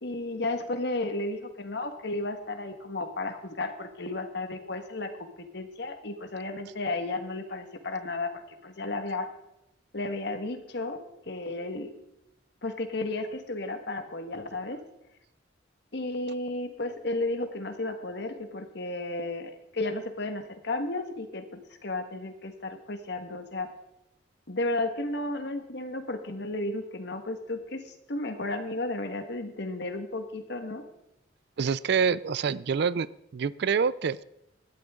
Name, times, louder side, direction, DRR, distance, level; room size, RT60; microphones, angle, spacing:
voice 1, 0.0-9.3 9.9-11.0 11.3-11.9 12.6-14.8 15.9-21.4 21.8-23.7 24.5-30.8, left 2 dB, 60° left, 6 dB, 1.5 m, -33 dB
voice 2, 31.6-33.1 33.3-34.2, right 6 dB, 60° right, 19 dB, 0.4 m, -26 dB
17.5 x 12.0 x 3.7 m, 0.84 s
head